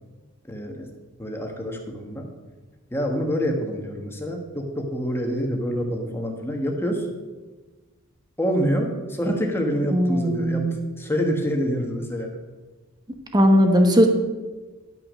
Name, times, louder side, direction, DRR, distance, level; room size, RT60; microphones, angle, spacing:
voice 1, 0.5-0.9 1.2-2.3 2.9-7.1 8.4-10.6 11.0-12.3, equal, 10° left, 2 dB, 1.4 m, -26 dB
voice 2, 9.9-10.8 13.3-14.1, equal, 20° right, 4 dB, 1.1 m, -18 dB
11.0 x 5.8 x 6.3 m, 1.3 s
head